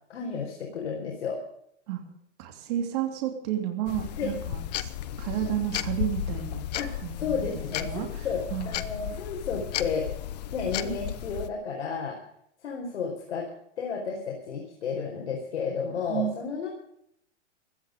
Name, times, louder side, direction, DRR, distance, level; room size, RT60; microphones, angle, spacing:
voice 1, 0.1-1.4 4.2-4.3 6.8-6.9 7.2-10.1 10.5-12.2 12.6-13.5 13.8-16.7, left 5 dB, 65° left, -1 dB, 4.7 m, -32 dB
voice 2, 2.4-4.9 5.2-6.7 7.0-8.1 8.5-8.8 16.1-16.3, right 11 dB, 35° right, 3 dB, 3.1 m, -31 dB
sound 1, 3.9-11.5, left 11 dB, 35° left, 0.8 m, -34 dB
17.0 x 12.5 x 5.2 m, 0.73 s
hypercardioid pair, 170°, 36 cm